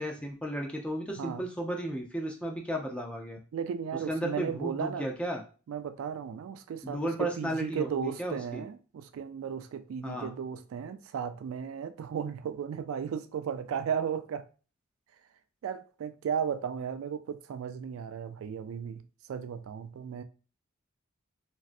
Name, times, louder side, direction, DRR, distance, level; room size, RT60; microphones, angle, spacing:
voice 1, 0.0-3.4 4.1-5.4 6.8-8.6 10.0-10.3, right 1 dB, 5° left, 0.5 m, -34 dB
voice 2, 3.5-5.1 5.7-14.4 15.6-19.0 19.3-20.2, right 7 dB, 80° right, 0.3 m, -35 dB
3.1 x 2.6 x 2.5 m
head